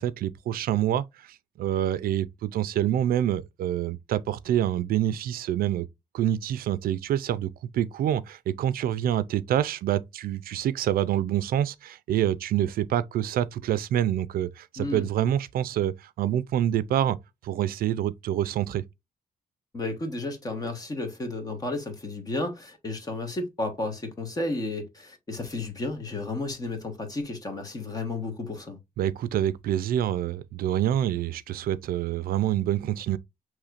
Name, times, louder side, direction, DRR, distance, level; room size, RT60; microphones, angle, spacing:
voice 1, 0.0-5.9 6.1-17.2 17.4-18.8 29.0-33.2, right 11 dB, 75° right, 0.4 m, -27 dB
voice 2, 19.7-28.8, left 2 dB, 25° left, 1.3 m, -32 dB
6.4 x 3.1 x 2.5 m
wide cardioid pair, 155°, 15 cm